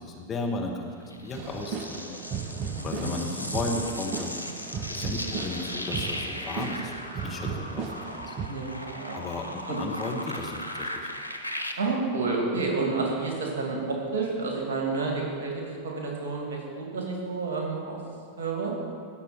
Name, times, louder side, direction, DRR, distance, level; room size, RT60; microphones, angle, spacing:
voice 1, 0.0-2.1 2.8-4.4 4.9-8.3 9.1-11.1, left 2 dB, 25° left, 1 dB, 1.2 m, -34 dB
sound 1, 1.1-11.7, left 1 dB, 85° right, 0.8 m, -37 dB
sound 2, 1.3-8.5, right 6 dB, 40° right, 0.7 m, -36 dB
voice 2, 2.7-3.1 8.5-9.1 9.7-9.8 11.8-18.0 18.4-18.7, right 3 dB, 55° right, -1 dB, 2.4 m, -30 dB
17.0 x 6.0 x 4.3 m, 2.2 s
figure-of-eight pair, 90°, 0 cm